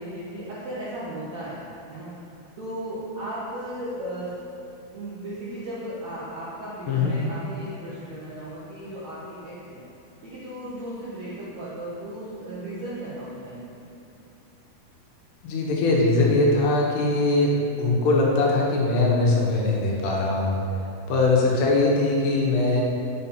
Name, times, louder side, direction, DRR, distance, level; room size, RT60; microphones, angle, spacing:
voice 1, 0.0-2.1 2.6-4.3 4.9-9.8 10.2-13.8, right 1 dB, 70° right, -9 dB, 1.6 m, -35 dB
voice 2, 6.9-7.2 15.4-17.5 17.8-20.6 21.1-22.8, left 2 dB, 85° left, -3 dB, 3.2 m, -21 dB
7.3 x 5.5 x 4.4 m, 2.8 s
omnidirectional pair, 4.7 m